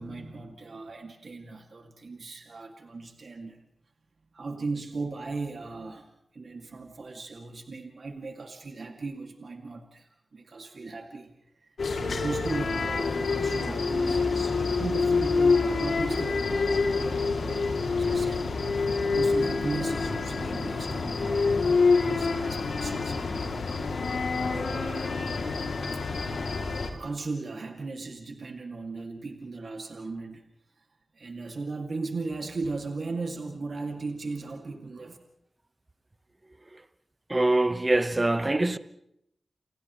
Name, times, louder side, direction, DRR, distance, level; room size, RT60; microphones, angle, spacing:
voice 1, 0.0-3.6 4.3-11.3 11.6-21.6 21.9-23.6 24.4-25.3 25.9-26.0 26.9-30.4 31.1-35.2, right 3 dB, 70° right, 2.4 m, -37 dB
sound 1, 11.8-26.9, left 4 dB, 90° left, 2.9 m, -27 dB
voice 2, 37.3-38.8, right 2 dB, 30° right, 1.2 m, -24 dB
29.5 x 29.5 x 3.2 m
cardioid pair, 60°, 0 cm